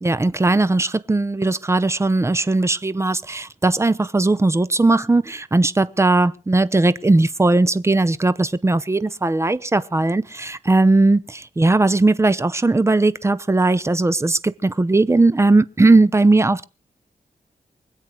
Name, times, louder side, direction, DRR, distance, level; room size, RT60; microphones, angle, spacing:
voice 1, 0.0-16.6, right 2 dB, 20° right, 0.7 m, -18 dB
24.5 x 8.3 x 4.7 m
wide cardioid pair, 135°, 15 cm